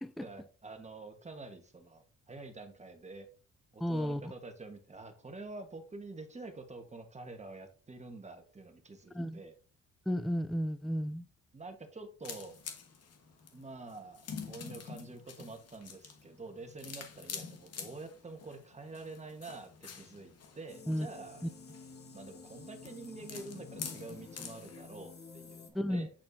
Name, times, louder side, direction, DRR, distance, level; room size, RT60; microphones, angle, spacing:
voice 1, 0.2-3.3 3.7-9.5 11.5-12.5 13.5-14.2 14.5-21.4 22.1-26.1, right 3 dB, 25° right, 1.3 m, -47 dB
voice 2, 3.8-4.2 9.1-9.4 10.1-11.3 20.9-21.1 21.4-21.5 25.7-26.1, equal, ahead, 0.3 m, -33 dB
sound 1, 12.2-24.8, left 6 dB, 55° left, 1.4 m, -47 dB
sound 2, 20.7-25.7, left 4 dB, 35° left, 1.3 m, -51 dB
8.6 x 4.3 x 2.7 m
cardioid pair, 90°, 30 cm